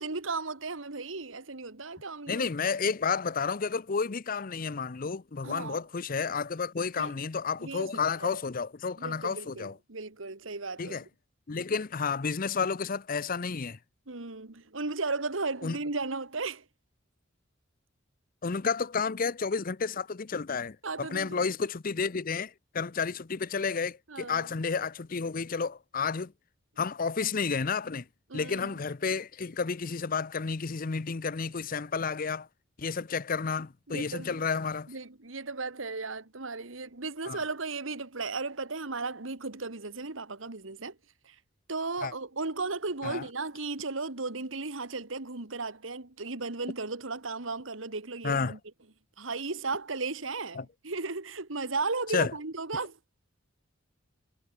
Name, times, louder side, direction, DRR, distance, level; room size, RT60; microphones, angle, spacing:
voice 1, 0.0-2.5 5.4-5.8 7.0-7.2 7.6-7.9 8.2-8.4 9.0-11.1 14.1-16.7 20.8-21.5 24.1-24.5 28.3-28.8 33.9-34.5 34.9-41.0 41.2-41.4 41.7-48.6 49.2-53.0, right 3 dB, 80° right, 2.0 m, -35 dB
voice 2, 2.3-9.7 10.8-11.0 11.5-13.8 15.6-15.8 18.4-26.3 26.8-28.0 28.3-32.5 32.8-34.9 37.3-37.4 42.0-42.1 43.0-43.3 48.2-48.5 50.6-50.7 52.1-52.3, left 5 dB, 45° left, 0.6 m, -31 dB
head